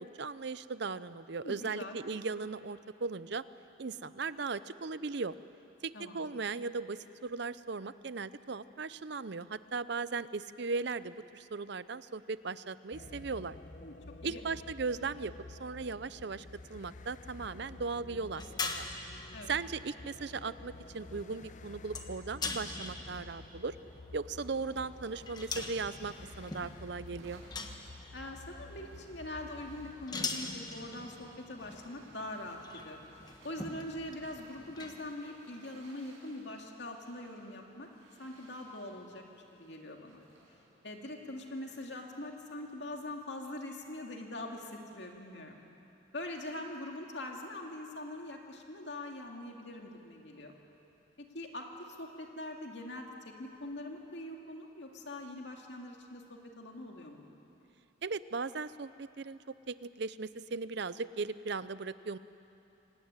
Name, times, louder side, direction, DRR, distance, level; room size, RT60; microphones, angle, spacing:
voice 1, 0.0-3.4 3.8-5.4 5.8-13.6 14.2-18.9 19.5-23.8 24.1-27.4 58.0-62.2, right 4 dB, 55° right, 15 dB, 0.6 m, -38 dB
voice 2, 1.4-2.0 5.9-6.2 13.8-13.9 14.2-14.4 19.3-19.5 28.1-33.0 33.4-37.9 38.2-39.2 39.5-40.2 40.8-45.6 46.1-50.5 51.2-57.2, left 1 dB, 55° left, 2 dB, 2.4 m, -43 dB
sound 1, 12.9-30.1, left 2 dB, 35° left, 0.7 m, -50 dB
sound 2, 18.2-35.1, left 3 dB, 20° left, 1.3 m, -44 dB
sound 3, 24.1-43.2, right 2 dB, 85° right, 5.9 m, -63 dB
26.0 x 18.0 x 9.7 m, 2.9 s
head